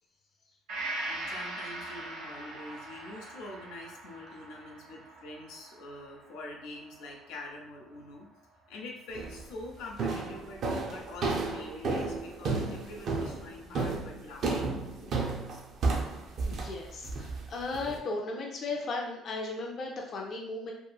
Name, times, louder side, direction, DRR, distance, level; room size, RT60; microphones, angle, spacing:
Gong, 0.7-8.3 8.7-8.8, right 2 dB, 65° right, 0.7 m, -42 dB
voice 1, 1.1-8.3 8.7-15.2 17.4-17.5, left 2 dB, 85° left, 0 dB, 0.6 m, -45 dB
sound 1, 9.2-9.5 10.0-18.0, right 3 dB, 40° right, 0.4 m, -32 dB
voice 2, 16.4-20.7, left 3 dB, 35° left, -1 dB, 0.4 m, -36 dB
2.8 x 2.5 x 2.3 m, 0.79 s
cardioid pair, 175°, 0 cm